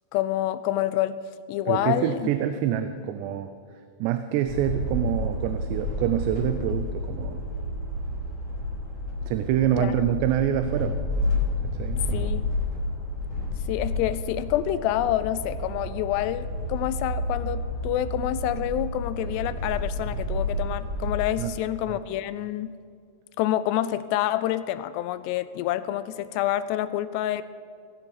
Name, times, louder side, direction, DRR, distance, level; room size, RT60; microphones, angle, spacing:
voice 1, 0.1-1.2 1.5-2.3 9.8-9.9 12.1-12.4 13.7-22.7 23.4-27.4, left 13 dB, 85° left, 14 dB, 2.6 m, -27 dB
voice 2, 1.7-3.5 4.0-7.4 9.2-11.1 11.8-12.3 21.4-21.5 21.9-22.0, right 10 dB, 90° right, 9 dB, 2.8 m, -26 dB
sound 1, 4.5-21.3, left 1 dB, 35° left, 1.3 m, -30 dB
17.5 x 16.0 x 4.1 m, 2.2 s
omnidirectional pair, 4.9 m